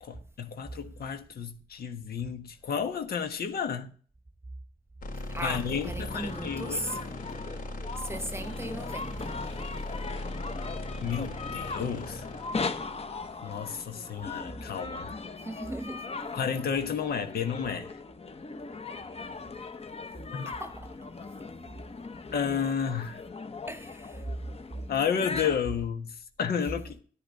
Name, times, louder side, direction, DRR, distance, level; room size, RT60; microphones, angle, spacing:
voice 1, 0.0-3.9 5.4-6.8 11.0-12.2 13.4-15.2 16.3-17.9 20.3-20.5 22.3-23.2 24.9-27.0, left 7 dB, 85° left, 1.4 m, -32 dB
sound 1, 5.0-14.2, left 1 dB, 70° left, 4.3 m, -39 dB
voice 2, 5.3-7.0 8.0-9.5 15.4-16.2 20.4-21.0 23.7-24.2, right 1 dB, 15° right, 1.0 m, -37 dB
sound 2, 6.1-25.6, left 4 dB, 40° left, 1.1 m, -39 dB
10.0 x 10.0 x 4.2 m
cardioid pair, 70°, 15 cm